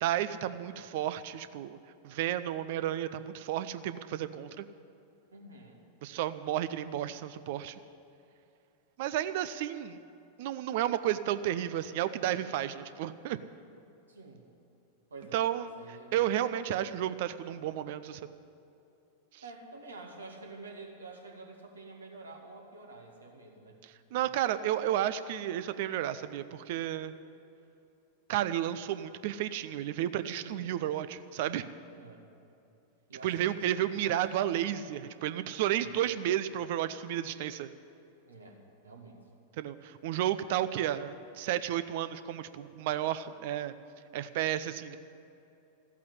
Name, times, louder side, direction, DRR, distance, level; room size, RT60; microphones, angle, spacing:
voice 1, 0.0-1.8 2.0-4.7 6.0-7.8 9.0-10.0 10.4-13.4 15.3-15.7 16.1-18.3 19.3-19.4 24.1-27.1 28.3-31.7 33.2-37.7 39.6-43.7 44.1-45.0, right 12 dB, 50° right, 13 dB, 0.6 m, -32 dB
voice 2, 5.3-5.8 14.1-14.4 15.1-15.4 15.8-16.4 19.4-23.8 24.1-24.3 30.4-30.8 31.9-32.3 33.1-33.9 35.7-36.0 38.3-39.2, right 3 dB, 75° right, 1 dB, 2.0 m, -49 dB
14.5 x 8.4 x 9.8 m, 2.7 s
figure-of-eight pair, 90°, 0 cm